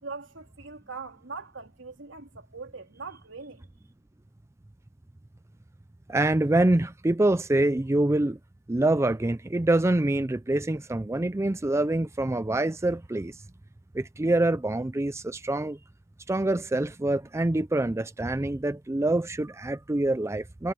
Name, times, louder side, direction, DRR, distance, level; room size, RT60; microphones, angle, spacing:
voice 1, 0.0-3.7, right 4 dB, 75° right, 3.3 m, -41 dB
voice 2, 6.1-8.4 8.7-13.4 13.9-15.8 16.3-20.7, right 2 dB, 15° right, 0.4 m, -25 dB
head